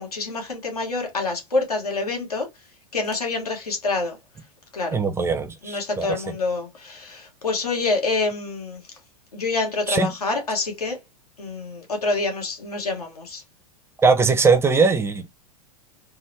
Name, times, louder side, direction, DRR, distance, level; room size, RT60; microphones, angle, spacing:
voice 1, 0.0-2.5 2.9-4.2 4.7-5.0 5.6-8.8 9.3-11.0 11.4-13.4, left 3 dB, 85° left, 1.3 m, -26 dB
voice 2, 4.9-6.2 9.9-10.1 14.0-15.3, right 4 dB, 15° right, 0.6 m, -20 dB
3.5 x 2.1 x 3.1 m
hypercardioid pair, 100°, 19 cm